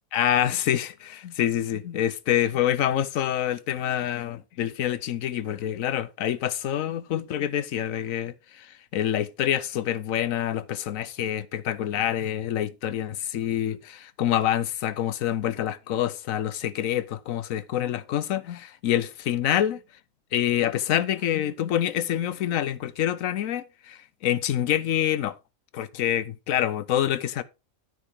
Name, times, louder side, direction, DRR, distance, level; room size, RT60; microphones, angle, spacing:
voice 1, 0.1-19.8 20.3-25.4 25.7-27.4, left 11 dB, 80° left, 1.1 m, -26 dB
9.9 x 9.2 x 3.5 m
omnidirectional pair, 1.4 m